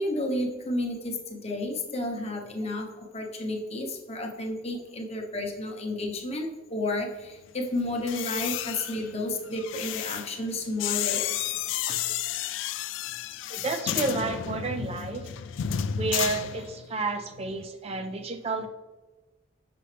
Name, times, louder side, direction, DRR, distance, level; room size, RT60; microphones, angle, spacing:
voice 1, 0.0-11.4, left 1 dB, 35° left, 2 dB, 0.9 m, -31 dB
sound 1, 7.9-17.1 17.3-17.7, left 10 dB, 80° left, 0.3 m, -32 dB
voice 2, 11.9-12.2 13.5-15.4 16.0-18.7, right 3 dB, 35° right, 7 dB, 0.4 m, -31 dB
6.8 x 5.4 x 3.3 m, 1.1 s
head